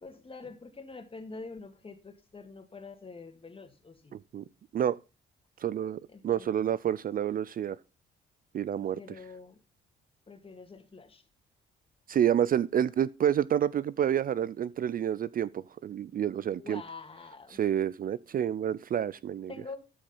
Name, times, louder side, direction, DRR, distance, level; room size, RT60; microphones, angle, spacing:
voice 1, 0.0-4.2 6.1-6.5 8.8-9.6 10.3-11.2 16.5-17.6 19.5-19.8, left 4 dB, 30° left, 2.1 m, -46 dB
voice 2, 4.1-4.4 4.7-5.0 5.6-7.8 8.5-9.0 12.1-16.8 17.5-19.5, right 9 dB, 45° right, 0.4 m, -29 dB
13.5 x 5.1 x 5.5 m
cardioid pair, 90°, 20 cm